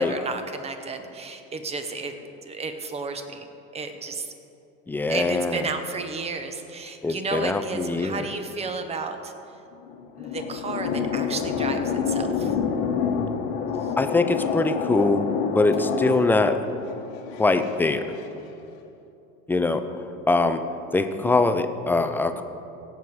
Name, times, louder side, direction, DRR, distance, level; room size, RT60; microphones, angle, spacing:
voice 1, 0.0-3.5 3.7-4.3 5.1-9.3 10.2-12.5 13.8-13.9 15.7-15.8, right 4 dB, 20° right, 7 dB, 0.9 m, -33 dB
voice 2, 4.9-5.7 7.0-8.3 14.0-15.3 15.5-16.6 17.4-18.1 19.5-19.8 20.3-20.6 20.9-22.4, left 3 dB, 5° left, 9 dB, 0.4 m, -22 dB
sound 1, 9.7-18.3, left 6 dB, 90° left, 1.2 m, -28 dB
18.0 x 7.8 x 4.8 m, 2.8 s
cardioid pair, 145°, 30 cm